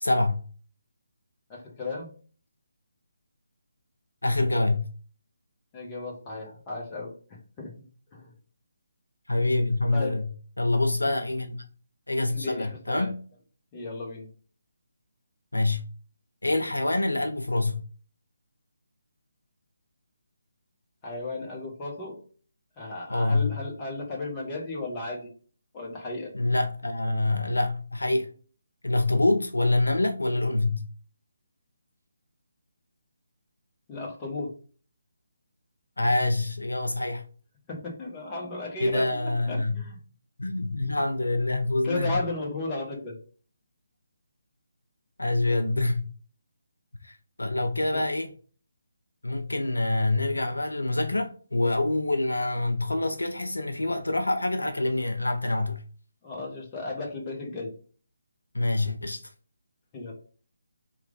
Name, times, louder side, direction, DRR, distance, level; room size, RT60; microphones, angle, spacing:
voice 1, 0.0-0.4 4.2-4.9 9.3-10.2 10.6-11.6 12.1-13.2 15.5-15.8 16.4-17.8 23.1-23.6 26.3-28.3 28.8-30.9 36.0-37.2 38.8-39.8 40.4-42.2 45.2-46.0 47.0-48.3 49.2-55.8 58.5-59.2, left 2 dB, 85° left, 0.5 m, -26 dB
voice 2, 1.5-2.1 5.7-7.1 7.6-7.7 8.1-8.3 9.9-10.2 11.0-11.1 12.3-13.1 13.7-14.3 21.0-22.2 22.8-25.2 25.7-26.3 33.9-34.5 37.7-40.0 41.8-43.2 47.9-48.0 56.2-57.7 59.9-60.1, left 2 dB, 20° left, 1.1 m, -34 dB
3.2 x 2.4 x 3.6 m
figure-of-eight pair, 150°, 0 cm